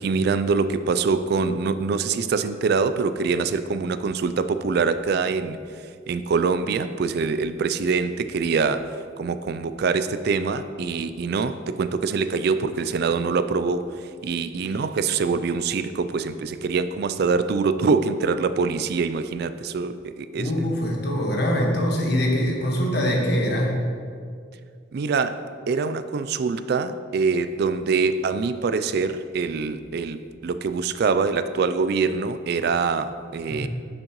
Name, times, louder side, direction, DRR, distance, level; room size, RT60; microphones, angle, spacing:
voice 1, 0.0-13.9 14.2-20.5 24.9-33.7, right 4 dB, 55° right, 11 dB, 0.3 m, -24 dB
voice 2, 20.4-23.8 33.5-33.7, equal, 60° left, -1 dB, 1.4 m, -23 dB
10.0 x 6.5 x 3.0 m, 2.2 s
head